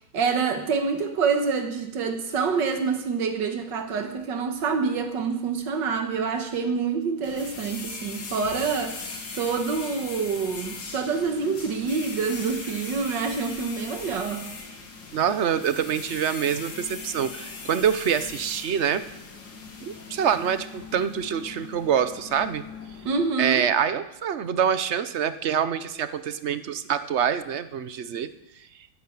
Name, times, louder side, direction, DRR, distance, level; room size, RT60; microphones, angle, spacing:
voice 1, 0.1-9.0 9.3-14.5 23.1-23.7, right 5 dB, 85° right, 5 dB, 2.0 m, -26 dB
sound 1, 7.2-23.3, left 4 dB, 85° left, 2.7 m, -40 dB
voice 2, 15.1-19.0 19.8-22.6 23.4-28.3, right 8 dB, 55° right, 12 dB, 0.8 m, -25 dB
11.5 x 11.5 x 8.6 m, 0.86 s
omnidirectional pair, 1.9 m